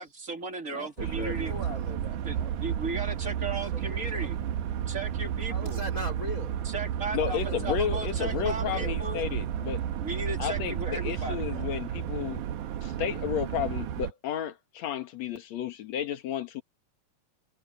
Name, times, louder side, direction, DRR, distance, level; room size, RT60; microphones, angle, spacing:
voice 1, 0.0-1.5 2.3-4.4 4.9-5.8 6.6-9.2 10.0-11.6, right 2 dB, 25° right, 2.8 m, -36 dB
voice 2, 0.7-1.3 7.1-9.8 10.4-12.4 12.8-16.6, left 9 dB, 60° left, 2.5 m, -32 dB
sound 1, 1.0-14.1, right 9 dB, 75° right, 2.5 m, -32 dB
voice 3, 1.3-2.6 3.7-4.3 5.5-6.6 7.2-9.1, left 1 dB, 25° left, 5.2 m, -41 dB
omnidirectional pair, 3.7 m